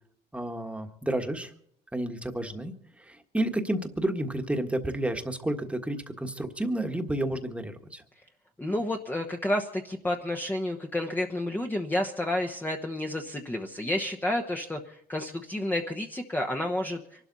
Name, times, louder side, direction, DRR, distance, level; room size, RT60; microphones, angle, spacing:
voice 1, 0.3-1.5 1.9-2.7 3.1-8.0, right 1 dB, 5° right, 5 dB, 1.5 m, -30 dB
voice 2, 8.6-17.0, left 1 dB, 10° left, 2 dB, 1.1 m, -30 dB
24.5 x 12.5 x 4.1 m, 0.67 s
cardioid pair, 110°, 17 cm